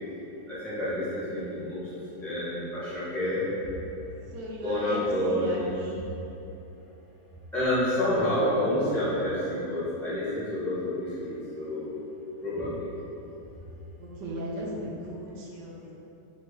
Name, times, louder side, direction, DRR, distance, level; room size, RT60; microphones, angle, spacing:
voice 1, 0.5-1.8 2.2-3.4 4.6-5.7 7.5-11.9 12.4-12.7, left 1 dB, ahead, -11 dB, 0.5 m, -28 dB
voice 2, 4.3-6.1 13.5-13.6 14.0-15.9, right 1 dB, 85° right, -3 dB, 1.3 m, -37 dB
3.4 x 2.1 x 3.5 m, 2.9 s
omnidirectional pair, 1.8 m